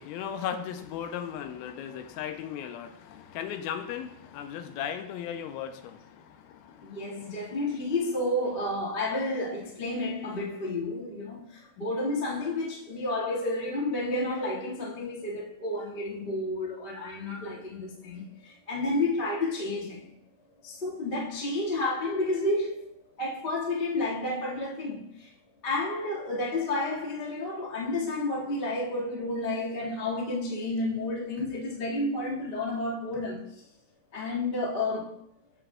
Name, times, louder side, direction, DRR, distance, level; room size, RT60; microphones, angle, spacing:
voice 1, 0.0-7.4, left 9 dB, 85° left, 2.4 m, -37 dB
voice 2, 6.8-20.1 20.6-22.9 23.2-25.3 25.6-33.4 34.1-35.1, left 2 dB, 35° left, 0.8 m, -31 dB
14.5 x 6.1 x 2.3 m
omnidirectional pair, 4.3 m